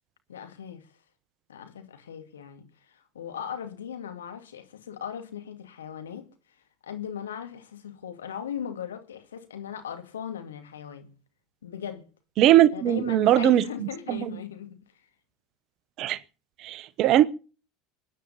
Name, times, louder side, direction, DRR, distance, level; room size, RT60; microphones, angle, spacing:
voice 1, 0.3-0.9 1.5-6.3 6.8-11.1 11.6-12.1 12.7-14.8, left 8 dB, 80° left, 2.3 m, -38 dB
voice 2, 12.4-13.6 14.1-14.3 16.0-16.2 16.6-17.3, right 12 dB, 50° right, 1.1 m, -20 dB
23.0 x 10.5 x 5.6 m
figure-of-eight pair, 75°, 0 cm